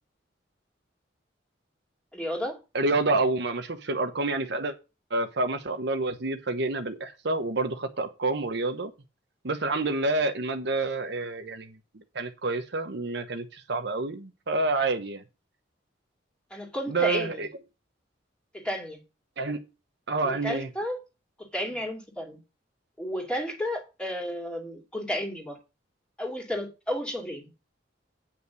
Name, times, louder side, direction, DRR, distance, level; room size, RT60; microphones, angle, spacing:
voice 1, 2.1-2.6 16.5-17.5 18.5-19.0 20.2-21.0 21.4-22.4 23.0-25.6 26.2-27.4, equal, 5° left, 2.5 m, -32 dB
voice 2, 2.7-4.7 5.1-8.9 9.4-15.2 16.9-17.5 19.4-19.6 20.1-20.7, right 3 dB, 65° right, 1.1 m, -28 dB
8.8 x 5.7 x 6.3 m
head